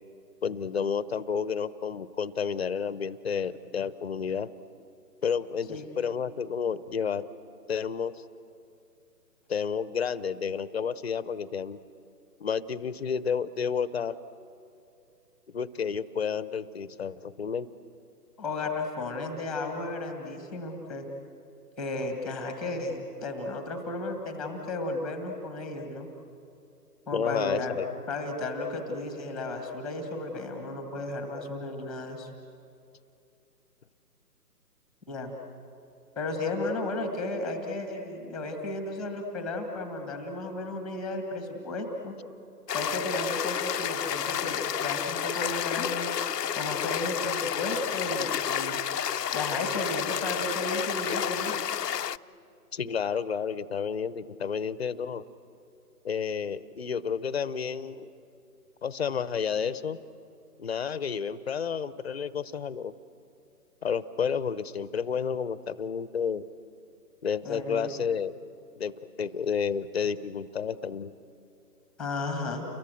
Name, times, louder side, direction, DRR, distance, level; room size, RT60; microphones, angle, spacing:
voice 1, 0.4-4.5 5.2-7.3 7.7-8.2 9.5-11.8 12.4-14.2 15.5-17.7 27.1-27.9 52.7-55.2 56.0-58.1 58.8-60.0 60.6-62.9 63.8-66.4 67.2-68.3 68.8-71.1, left 6 dB, 40° left, 16 dB, 0.8 m, -31 dB
voice 2, 18.4-21.1 21.8-26.1 27.1-27.8 28.1-32.3 35.1-35.3 36.1-42.1 42.7-46.1 46.5-48.8 49.3-51.5 67.4-67.9 72.0-72.6, left 2 dB, ahead, 5 dB, 1.4 m, -34 dB
sound 1, 42.7-52.2, left 9 dB, 80° left, 0.7 m, -30 dB
29.5 x 23.0 x 7.7 m, 2.7 s
figure-of-eight pair, 155°, 48 cm